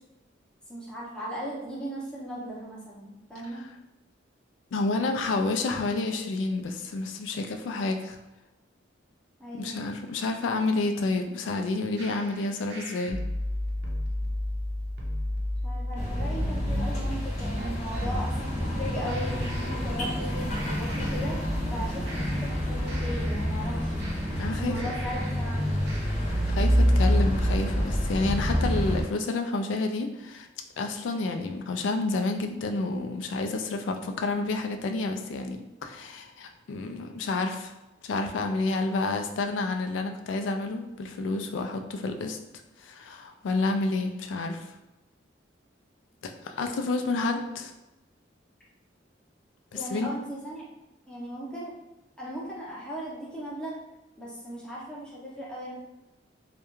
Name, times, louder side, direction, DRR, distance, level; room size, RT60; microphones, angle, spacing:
voice 1, 0.7-3.6 9.4-9.9 15.6-21.4 21.7-24.0 24.5-25.7 47.2-47.4 49.7-50.7 51.1-51.7 52.2-53.8 54.2-55.7, equal, 5° left, -6 dB, 0.6 m, -37 dB
voice 2, 4.7-8.2 9.5-13.2 24.4-24.7 26.3-30.5 30.8-37.7 38.0-42.4 42.8-44.7 46.2-47.7 49.9-50.1, left 3 dB, 75° left, 6 dB, 0.3 m, -29 dB
sound 1, 12.0-18.1 19.1-20.3 20.5-21.8 22.1-25.5 25.9-26.5, left 1 dB, 65° right, 0.5 m, -35 dB
sound 2, 16.0-29.0, equal, 40° left, 0.8 m, -27 dB
2.3 x 2.1 x 3.0 m, 0.98 s
head